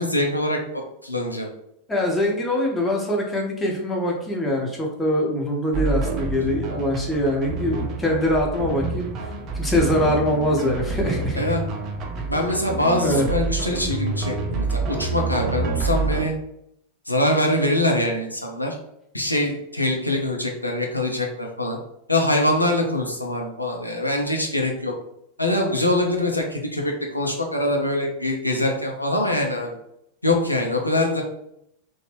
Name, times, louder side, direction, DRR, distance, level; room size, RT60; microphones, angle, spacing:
voice 1, 0.0-1.5 11.3-11.6 12.3-16.3 17.1-18.8 19.1-21.8 22.1-24.9 25.4-29.8 30.2-31.2, left 1 dB, 85° left, 1 dB, 0.5 m, -23 dB
voice 2, 1.9-9.1 9.5-11.5 12.2-12.3 13.0-13.3, left 1 dB, 10° left, -1 dB, 0.8 m, -23 dB
sound 1, 5.7-16.3, right 4 dB, 35° right, 0.4 m, -28 dB
2.9 x 2.1 x 3.3 m, 0.77 s
figure-of-eight pair, 90°, 0 cm